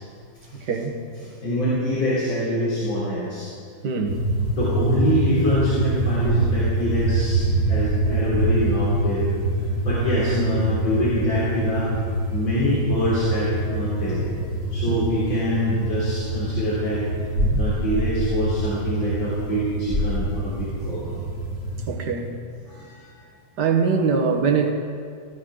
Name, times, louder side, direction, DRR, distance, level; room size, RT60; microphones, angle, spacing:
voice 1, 0.5-1.0 3.8-4.2 14.9-15.0 21.9-22.3 23.6-24.7, right 5 dB, 60° right, 3 dB, 1.8 m, -22 dB
voice 2, 1.1-3.5 4.6-9.3 9.8-11.9 12.3-14.2 14.7-17.0 17.6-21.0 22.7-23.1, equal, 85° left, -10 dB, 4.5 m, -25 dB
sound 1, 4.1-21.9, right 1 dB, 45° left, 2.8 m, -25 dB
18.5 x 15.5 x 3.8 m, 2.2 s
omnidirectional pair, 2.1 m